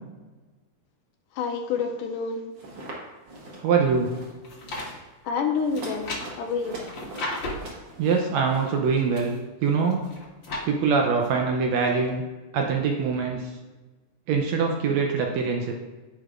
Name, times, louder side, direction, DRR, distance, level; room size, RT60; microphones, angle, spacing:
voice 1, 1.4-2.4 5.3-6.1 6.4-6.8, left 5 dB, 85° left, 4 dB, 2.4 m, -27 dB
sound 1, 2.6-3.0 3.3-3.6 3.9-4.3 4.6-5.0 5.5-8.7, right 2 dB, 45° right, 1.8 m, -42 dB
voice 2, 3.6-4.1 8.0-9.3 9.6-10.0 10.6-12.2 12.5-13.4 14.3-15.7, right 5 dB, 75° right, 1 dB, 1.7 m, -23 dB
sound 2, 4.2-4.9 5.7-7.7 8.7-9.4 9.9-10.7 11.2-11.3, left 2 dB, 50° left, 1.5 m, -35 dB
14.0 x 4.9 x 2.5 m, 1.2 s
omnidirectional pair, 3.7 m